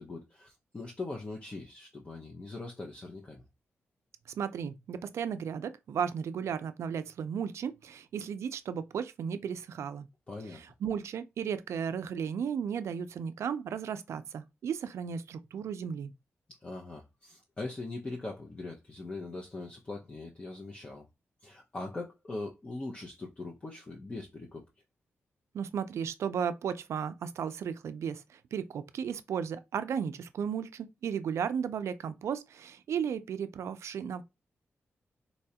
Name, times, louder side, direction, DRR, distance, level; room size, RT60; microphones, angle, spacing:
voice 1, 0.0-3.4 10.3-10.6 16.5-21.0 21.4-24.7, left 2 dB, 25° left, 0.5 m, -41 dB
voice 2, 4.3-10.1 10.5-16.1 25.5-34.2, right 7 dB, 85° right, 0.3 m, -35 dB
4.0 x 2.3 x 2.7 m
wide cardioid pair, 120°, 5 cm